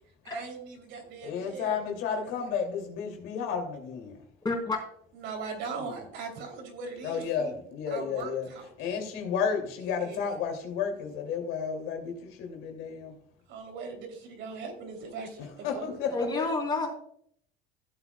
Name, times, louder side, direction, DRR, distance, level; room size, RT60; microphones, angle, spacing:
voice 1, 0.2-1.8 2.1-2.5 5.1-7.5 7.9-9.0 10.0-10.2 13.5-16.0, right 4 dB, 65° right, 3 dB, 3.3 m, -40 dB
voice 2, 1.2-4.1 5.8-6.0 7.0-8.5 8.8-13.1 15.4-16.4, left 6 dB, 70° left, 3 dB, 2.8 m, -32 dB
voice 3, 4.4-4.8 16.1-16.9, left 3 dB, 20° left, 0 dB, 3.8 m, -29 dB
16.0 x 8.0 x 2.3 m, 0.66 s
cardioid pair, 130°, 21 cm